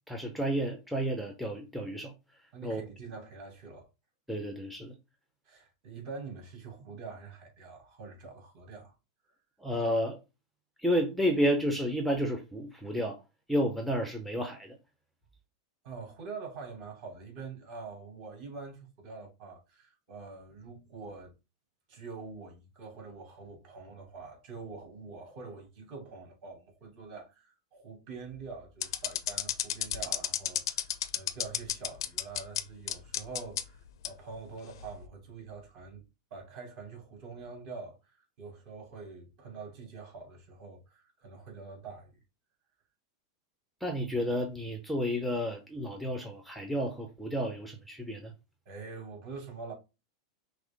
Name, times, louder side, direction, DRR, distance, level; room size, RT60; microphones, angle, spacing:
voice 1, 0.1-2.1 2.6-2.8 4.3-4.9 9.6-10.2 10.8-13.2 13.5-14.8 43.8-48.3, equal, ahead, 0.7 m, -31 dB
voice 2, 2.5-3.9 5.4-8.9 15.8-21.3 21.9-36.0 36.3-42.2 48.6-49.7, right 4 dB, 50° right, 2.6 m, -45 dB
sound 1, 28.8-32.6 32.9-33.6 34.0-34.1 34.8-35.1, left 11 dB, 75° left, 0.5 m, -31 dB
5.9 x 2.0 x 3.7 m
supercardioid pair, 140°, 2 cm